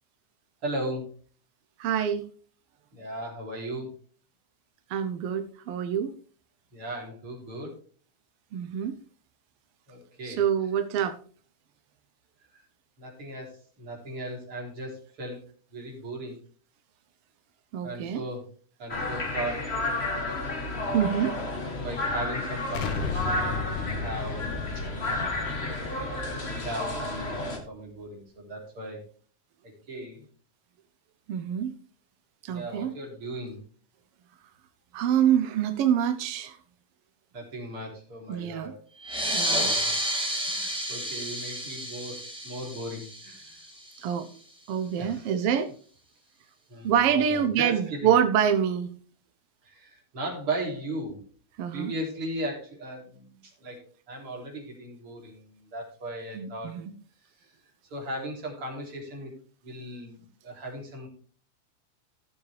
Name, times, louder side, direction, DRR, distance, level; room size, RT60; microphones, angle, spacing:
voice 1, 0.6-1.1 2.9-3.9 6.7-7.8 9.9-10.4 12.5-12.6 13.0-15.4 15.7-16.4 17.8-18.5 18.8-19.7 21.0-24.4 24.8-24.9 25.8-29.0 29.9-30.3 32.5-33.6 37.3-38.8 39.6-40.0 40.5-43.6 45.0-45.3 46.7-48.1 49.6-51.2 51.7-53.8 54.1-56.7 57.9-59.3 59.6-61.1, right 1 dB, 45° right, -1 dB, 4.2 m, -37 dB
voice 2, 1.8-2.3 4.9-6.1 8.5-8.9 10.2-11.2 17.7-18.2 20.9-21.3 31.3-31.7 32.4-32.9 34.9-36.6 38.3-38.7 39.3-39.7 44.0-44.3 44.7-45.7 46.8-48.9 51.6-51.9 56.3-56.9, right 9 dB, 70° right, 9 dB, 1.4 m, -26 dB
sound 1, 18.9-27.6, left 2 dB, 25° left, 1.7 m, -31 dB
Explosion, 22.7-27.6, left 4 dB, 85° left, 2.7 m, -35 dB
sound 2, 39.0-44.1, equal, ahead, 2.1 m, -31 dB
15.5 x 7.1 x 3.3 m, 0.42 s
omnidirectional pair, 3.5 m